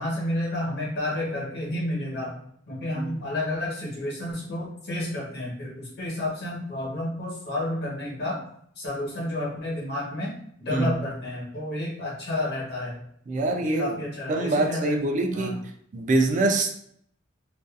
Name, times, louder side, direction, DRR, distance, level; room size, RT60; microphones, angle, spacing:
voice 1, 0.0-2.4 2.7-8.4 8.8-10.3 10.6-13.0 13.4-15.0 15.3-15.6, left 1 dB, 55° left, -4 dB, 1.1 m, -31 dB
voice 2, 13.3-14.0 14.3-15.6 15.9-16.7, right 2 dB, 40° right, 4 dB, 0.4 m, -24 dB
2.6 x 2.3 x 2.3 m, 0.65 s
head